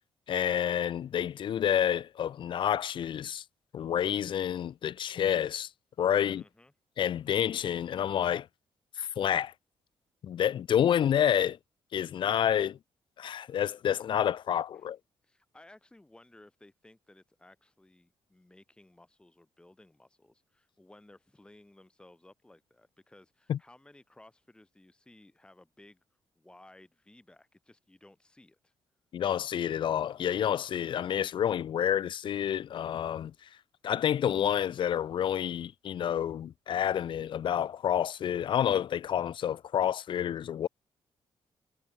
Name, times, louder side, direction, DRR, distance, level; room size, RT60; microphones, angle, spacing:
voice 1, 0.3-3.4 3.7-5.7 6.0-6.4 7.0-8.5 9.0-9.5 10.2-11.6 11.9-12.8 13.2-15.0 23.5-23.6 29.1-33.3 33.8-40.7, left 9 dB, 55° left, 0.7 m, -29 dB
voice 2, 6.2-6.7 14.7-14.9 15.2-26.0 26.4-28.7, left 1 dB, 10° left, 4.2 m, -58 dB
cardioid pair, 125°, 10 cm